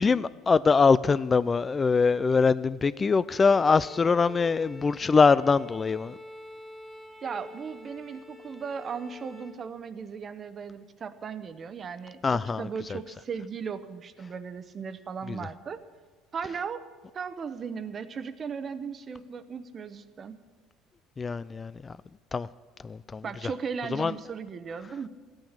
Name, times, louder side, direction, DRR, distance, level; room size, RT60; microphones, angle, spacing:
voice 1, 0.0-6.2 12.2-13.0 15.3-15.4 21.2-22.0 22.3-22.5 22.8-23.2 23.9-24.1, left 5 dB, 25° left, 0.3 m, -23 dB
Bowed string instrument, 3.3-9.7, left 1 dB, 5° left, 1.5 m, -47 dB
voice 2, 7.2-15.8 16.3-16.8 17.1-20.4 23.2-25.1, right 6 dB, 40° right, 0.9 m, -37 dB
14.5 x 8.9 x 7.3 m
supercardioid pair, 95°, 0 cm